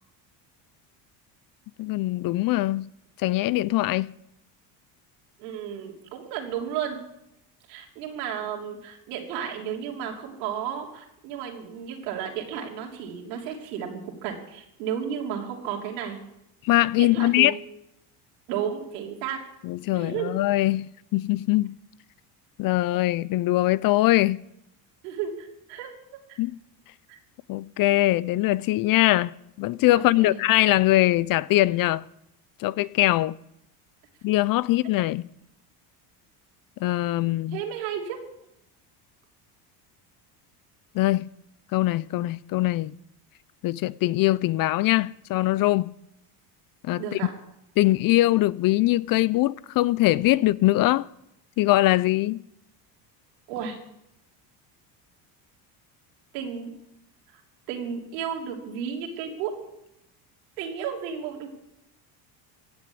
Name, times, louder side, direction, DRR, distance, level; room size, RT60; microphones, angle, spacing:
voice 1, 1.8-2.9 3.2-4.1 16.6-17.5 19.6-21.8 22.6-24.4 26.4-26.6 27.5-32.0 32.6-33.3 34.2-35.2 36.8-37.6 40.9-41.3 41.7-42.9 43.6-45.9 46.8-47.2 47.8-51.1 51.6-52.4, left 17 dB, 50° left, 0.5 m, -22 dB
voice 2, 5.4-7.0 7.7-16.2 17.0-17.6 18.5-19.4 19.9-20.3 25.0-25.9 26.3-26.4 27.1-27.2 30.2-30.4 37.5-38.2 47.0-47.3 53.5-53.8 56.3-56.7 57.7-59.6 60.6-61.5, right 8 dB, 85° right, 3.2 m, -33 dB
16.5 x 7.0 x 8.3 m
supercardioid pair, 105°, 47 cm